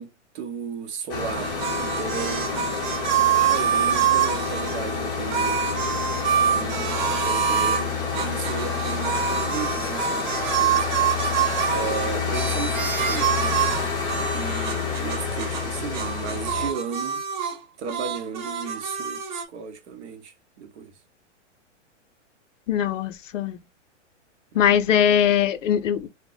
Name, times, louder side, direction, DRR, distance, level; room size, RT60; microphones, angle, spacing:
voice 1, 0.0-2.9 3.3-5.9 6.5-10.9 11.7-13.7 14.1-17.2 17.8-20.9 24.5-24.6, right 6 dB, 60° right, 0.8 m, -35 dB
sound 1, 1.1-16.7, left 5 dB, 10° left, 0.5 m, -28 dB
sound 2, 1.4-4.8 5.3-7.8 8.1-15.7 15.9-17.6 17.8-19.4, right 8 dB, 40° right, 0.4 m, -26 dB
voice 2, 22.7-23.6 24.5-26.1, left 9 dB, 85° left, 0.6 m, -21 dB
2.1 x 2.1 x 3.8 m
hypercardioid pair, 140°, 37 cm